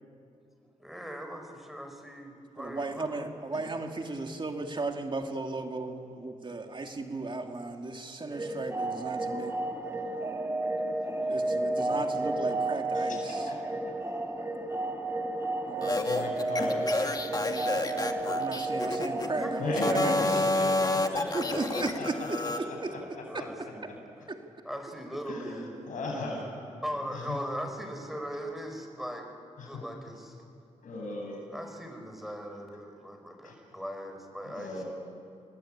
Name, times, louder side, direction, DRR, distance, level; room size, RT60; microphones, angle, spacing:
voice 1, 0.8-3.3 19.4-20.0 22.9-24.0 24.6-25.8 26.8-29.3 29.6-30.3 31.5-34.8, equal, ahead, 4 dB, 5.7 m, -40 dB
voice 2, 2.6-5.9 6.2-9.6 11.3-13.5 15.6-16.1 17.4-17.7 18.0-20.4 21.3-23.4 24.3-24.4, right 3 dB, 35° right, 3 dB, 2.7 m, -35 dB
sound 1, 8.3-21.1, right 2 dB, 20° right, 2.4 m, -32 dB
voice 3, 13.1-13.5 16.0-17.1 19.6-22.1 25.3-26.4 27.3-27.4 29.6-29.8 30.8-31.4 33.4-33.5 34.5-34.8, left 2 dB, 75° left, 1 dB, 7.9 m, -36 dB
sound 2, 15.8-19.3 19.7-22.6, left 2 dB, 30° left, 2.4 m, -29 dB
29.0 x 20.5 x 8.9 m, 2.5 s
cardioid pair, 55°, 13 cm